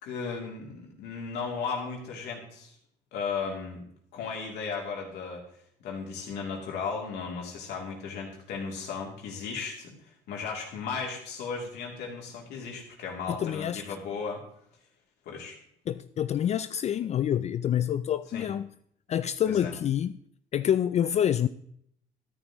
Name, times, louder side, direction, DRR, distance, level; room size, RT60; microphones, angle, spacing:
voice 1, 0.0-2.7 3.1-3.8 4.1-5.4 5.8-14.4 15.2-15.6 18.3-18.4 19.4-19.7, left 5 dB, 80° left, 3.0 m, -35 dB
voice 2, 13.3-13.8 15.9-18.7 19.1-20.1 20.5-21.5, left 10 dB, 40° left, 0.4 m, -27 dB
13.0 x 10.0 x 3.1 m
cardioid pair, 110°, 17 cm